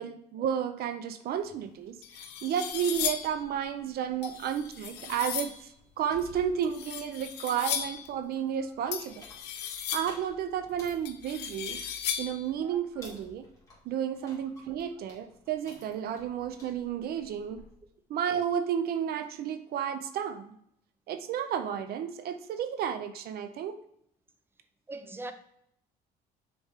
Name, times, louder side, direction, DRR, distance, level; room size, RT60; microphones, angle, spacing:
voice 1, 0.0-9.2 9.9-11.8 12.2-13.5 13.9-17.6 18.1-20.5 21.1-23.8, right 9 dB, 65° right, 0.6 m, -32 dB
sound 1, 1.5-1.6 2.0-3.4 4.2-5.6 6.6-8.1 8.9-10.3 11.0-12.5, left 9 dB, 80° left, 0.7 m, -36 dB
sound 2, 2.7-17.8, left 1 dB, 20° left, 2.3 m, -56 dB
voice 2, 12.6-13.1 24.9-25.3, right 2 dB, 15° right, 0.6 m, -41 dB
6.6 x 4.3 x 3.5 m
cardioid pair, 110°, 17 cm